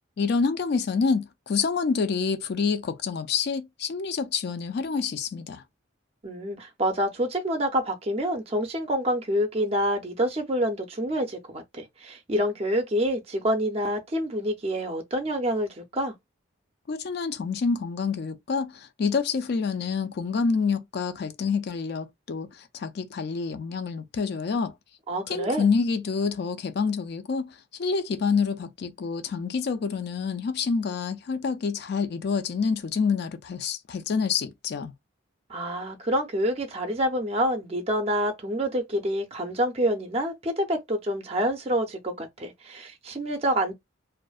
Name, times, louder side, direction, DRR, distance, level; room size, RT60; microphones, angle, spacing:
voice 1, 0.2-5.6 16.9-24.7 25.3-34.9, left 5 dB, 55° left, 0.3 m, -27 dB
voice 2, 6.2-16.1 25.1-25.7 35.5-43.7, equal, 30° right, 0.5 m, -27 dB
2.5 x 2.1 x 2.3 m
head